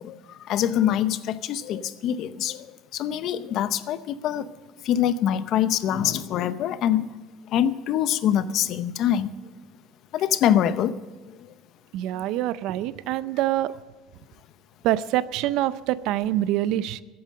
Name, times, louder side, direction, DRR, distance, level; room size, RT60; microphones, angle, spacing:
voice 1, 0.0-4.5 4.8-7.1 7.5-9.3 10.1-11.0 11.3-11.5 12.1-12.2, left 10 dB, 55° left, 14 dB, 0.6 m, -24 dB
voice 2, 11.9-13.7 14.8-17.0, right 13 dB, 65° right, 17 dB, 0.5 m, -25 dB
15.0 x 8.7 x 7.6 m, 1.2 s
cardioid pair, 140°, 0 cm